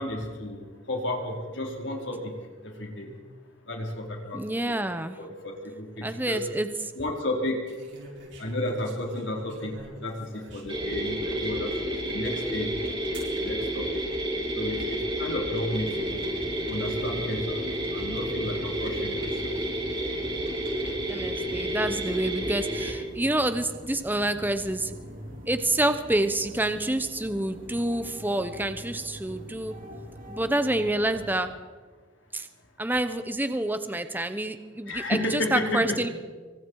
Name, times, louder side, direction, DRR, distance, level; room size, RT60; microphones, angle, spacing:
voice 1, 0.0-2.3 2.6-3.2 3.7-4.4 4.7-6.4 6.9-7.7 8.4-12.8 13.3-14.0 14.5-16.3 16.7-17.6 17.9-19.6 34.9-36.0, left 1 dB, 65° left, 0 dB, 4.5 m, -32 dB
voice 2, 4.3-5.2 6.0-6.7 21.1-24.9 25.5-29.8 30.3-31.5 32.3-32.5 32.8-36.1, right 1 dB, 10° right, 10 dB, 1.0 m, -28 dB
sound 1, 6.0-6.4 7.7-11.0 11.6-11.7 13.1-13.4 14.2-14.7, right 1 dB, 65° right, 7.1 m, -46 dB
sound 2, 10.7-22.9, right 1 dB, 25° right, 7.9 m, -30 dB
sound 3, 15.7-31.4, equal, 45° right, 4.4 m, -44 dB
26.5 x 24.5 x 4.8 m, 1.4 s
head